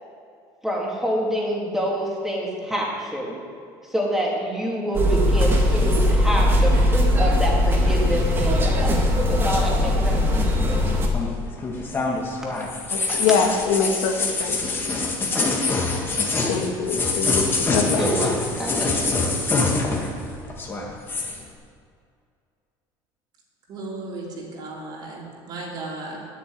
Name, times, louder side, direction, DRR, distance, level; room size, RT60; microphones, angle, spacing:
voice 1, 0.6-3.4 3.9-8.9 9.3-10.2 13.1-13.2 13.9-14.1 14.7-14.8 15.3-15.5 17.9-19.3, equal, 5° right, -3 dB, 2.9 m, -27 dB
sound 1, 4.9-11.1, left 1 dB, 25° right, 2.2 m, -19 dB
sound 2, 11.1-20.2 20.5-21.4, left 3 dB, 25° left, 2.1 m, -25 dB
voice 2, 12.9-14.6 16.5-18.1, left 5 dB, 85° left, 3 dB, 1.8 m, -24 dB
voice 3, 23.7-26.3, right 2 dB, 45° right, -2 dB, 3.6 m, -35 dB
10.0 x 8.5 x 9.7 m, 2.3 s
cardioid pair, 140°, 10 cm